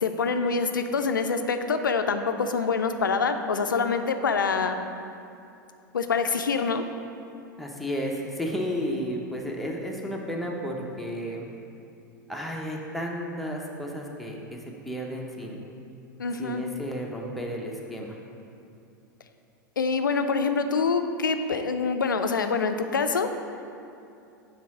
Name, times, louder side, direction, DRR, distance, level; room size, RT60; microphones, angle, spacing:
voice 1, 0.0-4.8 5.9-6.8 16.2-16.6 19.8-23.3, left 5 dB, 80° left, 8 dB, 0.4 m, -25 dB
voice 2, 7.6-11.5 12.3-14.6 14.8-15.6 16.4-18.2, equal, ahead, -2 dB, 0.9 m, -32 dB
6.0 x 3.9 x 5.9 m, 2.7 s
figure-of-eight pair, 90°, 10 cm